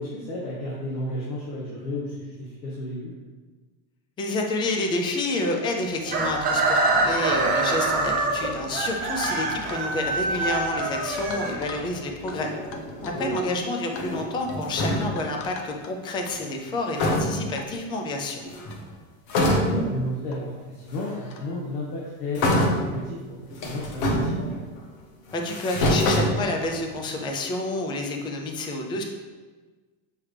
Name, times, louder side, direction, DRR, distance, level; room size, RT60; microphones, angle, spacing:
voice 1, 0.0-3.1 9.3-9.5 13.1-13.3 19.6-24.5, left 1 dB, 90° left, -4 dB, 1.6 m, -32 dB
voice 2, 4.2-12.5 13.0-18.4 25.3-29.0, left 2 dB, 10° left, 2 dB, 0.3 m, -29 dB
Chicken rooster, 6.1-12.0, right 3 dB, 20° right, 1.0 m, -25 dB
sound 1, 7.1-7.3 7.7-8.1 8.4-8.6 9.2-10.5 10.8-10.9 11.2-11.9 12.3-12.4 12.7-13.5 13.8-14.0 14.5-14.7 15.2-15.9 16.2-16.4 17.0-17.2 17.6-17.7 18.4-18.5 18.7-18.8 19.3-19.4 20.3-20.4 21.3-21.5, left 4 dB, 70° left, 0.9 m, -40 dB
sound 2, 12.3-13.5 13.9-15.3 16.6-16.7 17.0-17.7 18.4-18.9 19.3-20.0 21.0-21.1 22.4-23.1 23.5-24.8 25.3-26.9, left 1 dB, 50° left, 1.2 m, -26 dB
7.1 x 4.8 x 3.3 m, 1.3 s
supercardioid pair, 145°, 44 cm